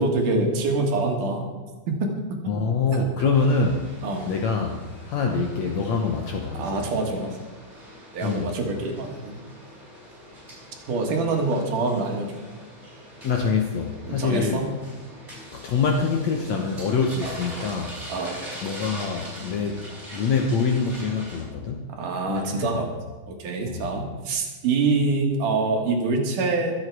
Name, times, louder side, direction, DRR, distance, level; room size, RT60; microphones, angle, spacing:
voice 1, 0.0-1.5 1.9-2.4 2.9-3.0 4.0-4.3 6.5-7.4 8.1-9.4 10.9-12.3 14.1-14.7 18.1-18.4 21.9-22.9 23.3-26.7, right 3 dB, 65° right, 2 dB, 3.1 m, -25 dB
voice 2, 2.5-3.9 4.3-6.8 8.2-8.5 13.2-14.6 15.5-18.0 18.6-19.8 20.1-21.9 22.3-22.7 23.7-23.8, left 4 dB, 65° left, 2 dB, 1.8 m, -25 dB
sound 1, 3.3-21.4, right 1 dB, 15° right, 6.2 m, -42 dB
24.0 x 8.1 x 4.7 m, 1.3 s
omnidirectional pair, 4.2 m